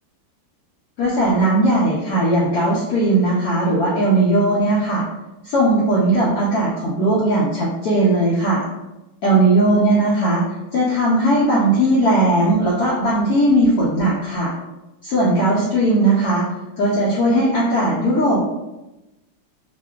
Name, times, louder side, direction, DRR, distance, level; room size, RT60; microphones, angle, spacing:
voice 1, 1.0-5.0 5.4-8.6 9.2-10.4 10.7-14.5 15.0-16.4 16.8-18.5, right 1 dB, 70° left, -6 dB, 1.0 m, -18 dB
2.8 x 2.4 x 2.2 m, 0.98 s
omnidirectional pair, 2.0 m